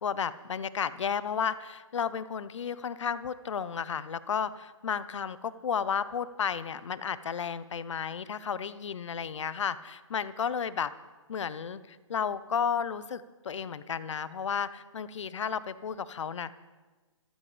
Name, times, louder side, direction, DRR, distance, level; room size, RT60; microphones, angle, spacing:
voice 1, 0.0-10.9 11.3-16.5, left 7 dB, 65° left, 16 dB, 0.9 m, -33 dB
26.5 x 14.5 x 3.4 m, 1.2 s
hypercardioid pair, 140°, 16 cm